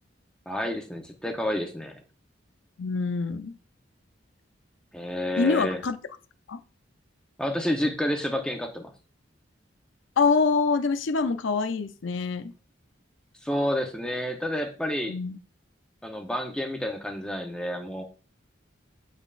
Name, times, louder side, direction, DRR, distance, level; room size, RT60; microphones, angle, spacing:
voice 1, 0.5-1.9 4.9-5.8 7.4-8.9 13.4-15.2 16.0-18.0, left 1 dB, 5° left, 0.9 m, -29 dB
voice 2, 2.8-3.5 5.4-6.0 6.5-6.6 10.2-12.5 15.1-15.4, left 4 dB, 85° left, 0.6 m, -25 dB
8.2 x 5.4 x 2.5 m
head